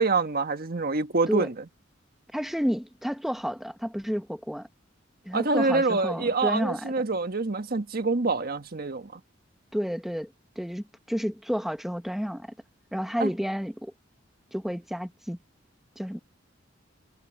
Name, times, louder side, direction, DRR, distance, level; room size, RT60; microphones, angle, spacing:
voice 1, 0.0-1.5 5.3-9.2 13.2-13.3, right 3 dB, 50° right, 1.5 m, -26 dB
voice 2, 2.3-4.7 5.2-6.9 9.7-10.3 10.6-12.5 12.9-13.9 14.5-15.4 16.0-16.2, equal, ahead, 1.2 m, -30 dB
head